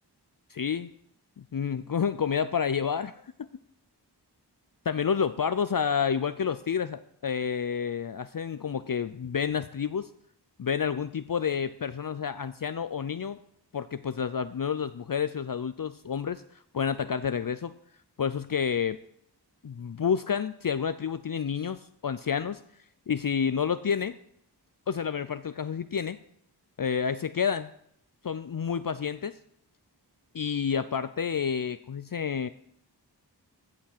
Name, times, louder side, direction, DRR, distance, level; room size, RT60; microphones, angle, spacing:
voice 1, 0.5-0.9 1.4-3.1 3.4-3.5 4.9-10.1 10.6-13.4 13.7-16.4 16.7-17.7 18.2-19.0 19.6-22.6 23.1-24.1 24.9-26.2 26.8-27.7 28.2-29.4 30.3-32.5, left 7 dB, 55° left, 13 dB, 0.5 m, -29 dB
16.0 x 6.0 x 6.6 m, 0.71 s
wide cardioid pair, 55°, 42 cm